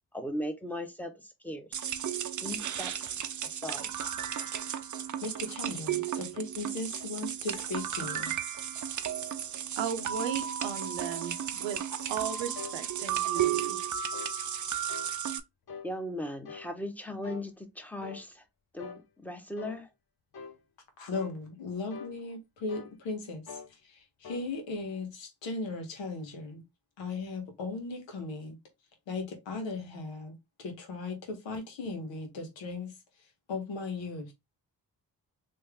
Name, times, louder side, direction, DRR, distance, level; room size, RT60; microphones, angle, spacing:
voice 1, 0.1-1.8 2.4-3.1 3.4-3.9 15.8-18.4 18.7-19.9, left 1 dB, 5° left, 1.1 m, -38 dB
sound 1, 1.7-15.4, right 9 dB, 45° right, 0.5 m, -34 dB
voice 2, 5.2-8.3 21.0-26.6 27.0-28.6 29.1-32.9 33.5-34.3, left 3 dB, 85° left, 1.1 m, -37 dB
voice 3, 9.8-11.8 12.1-13.9, right 8 dB, 90° right, 0.7 m, -36 dB
sound 2, 12.6-12.8 13.3-13.6 14.1-14.4 14.9-15.1 15.7-15.9 16.5-16.7 17.2-17.5 18.0-18.2 18.8-19.0 19.6-19.8 20.3-20.6 21.1-21.4 21.9-22.2 22.7-23.0 23.5-23.7 24.2-24.5, left 5 dB, 55° left, 0.9 m, -44 dB
3.2 x 2.5 x 3.5 m
supercardioid pair, 40°, 44 cm